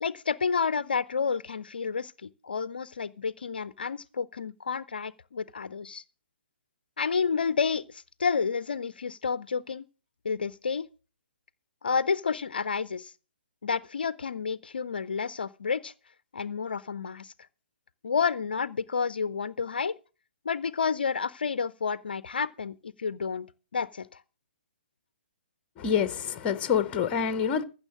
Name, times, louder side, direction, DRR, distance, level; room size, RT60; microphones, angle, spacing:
voice 1, 0.0-6.0 7.0-9.8 10.2-10.9 11.8-13.1 13.6-15.9 16.3-17.3 18.0-19.9 20.5-23.5 23.7-24.2, left 5 dB, 60° left, 0.5 m, -30 dB
voice 2, 25.8-27.6, left 7 dB, 20° left, 1.0 m, -26 dB
15.0 x 6.6 x 6.3 m
figure-of-eight pair, 125°, 6 cm